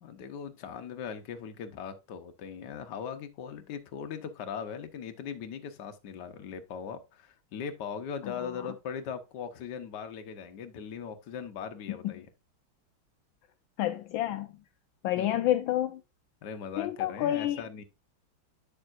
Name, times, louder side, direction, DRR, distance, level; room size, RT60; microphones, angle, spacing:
voice 1, 0.0-12.3 15.2-15.4 16.4-17.8, left 7 dB, 65° left, 1.5 m, -39 dB
voice 2, 13.8-14.5 15.0-16.0 16.8-17.6, left 12 dB, 80° left, 1.3 m, -29 dB
8.6 x 6.8 x 2.5 m
omnidirectional pair, 2.2 m